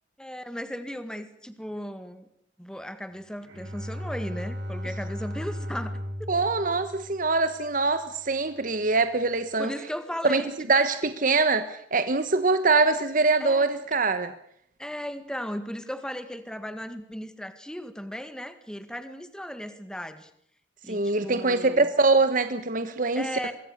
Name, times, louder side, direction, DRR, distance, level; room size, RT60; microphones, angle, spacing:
voice 1, 0.2-2.3 2.6-6.3 9.6-10.7 13.4-14.0 14.8-20.3 20.8-21.9 23.1-23.5, equal, 5° left, 10 dB, 1.8 m, -36 dB
Bowed string instrument, 3.4-7.9, equal, 80° right, 7.6 m, -36 dB
voice 2, 6.3-9.7 10.2-14.3 20.9-23.3, right 3 dB, 45° right, 10 dB, 1.2 m, -23 dB
23.5 x 23.0 x 6.6 m, 0.70 s
head